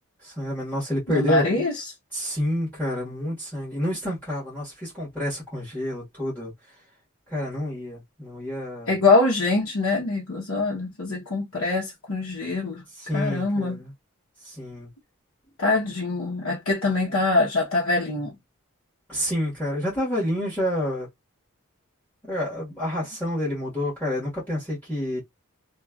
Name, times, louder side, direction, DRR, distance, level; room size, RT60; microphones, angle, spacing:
voice 1, 0.2-1.6 2.1-6.5 7.3-9.0 13.0-13.9 14.4-14.9 19.1-21.1 22.3-25.2, left 1 dB, 10° left, 1.4 m, -28 dB
voice 2, 1.1-1.8 8.9-12.8 13.1-13.8 15.6-18.3, left 3 dB, 80° left, 0.9 m, -24 dB
3.0 x 2.4 x 2.3 m
head